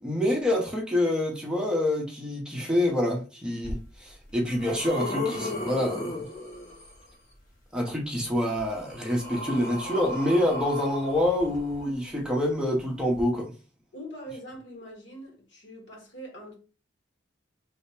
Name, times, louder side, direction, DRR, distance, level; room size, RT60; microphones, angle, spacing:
voice 1, 0.0-6.3 7.7-13.5, left 1 dB, 5° right, 0.6 m, -27 dB
sound 1, 3.6-3.7 4.3-7.1 8.3-12.2 13.1-13.2, left 2 dB, 45° left, 1.1 m, -36 dB
voice 2, 13.9-16.5, right 1 dB, 75° left, 1.4 m, -43 dB
3.2 x 2.1 x 4.2 m
head